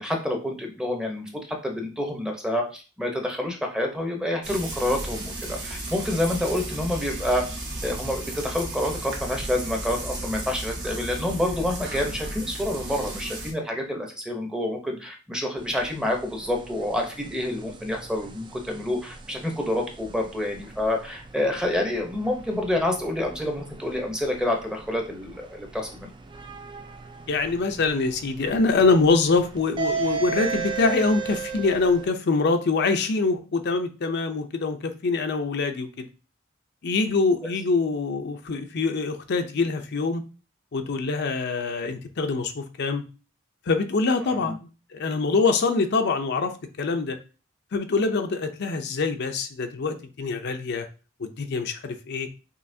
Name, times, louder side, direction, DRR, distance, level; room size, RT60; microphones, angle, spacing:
voice 1, 0.0-7.4 7.8-26.1 44.3-44.5, left 1 dB, 5° right, 2 dB, 0.7 m, -28 dB
Frying (food), 4.4-13.5, right 2 dB, 60° right, 1.3 m, -34 dB
sound 1, 15.6-32.1, right 5 dB, 25° right, 0.4 m, -37 dB
voice 2, 27.3-36.0 36.8-40.2 40.7-43.0 43.7-46.5 46.8-47.2 47.7-50.9 51.2-52.3, left 4 dB, 55° left, 6 dB, 0.5 m, -24 dB
5.5 x 2.9 x 2.7 m, 0.33 s
head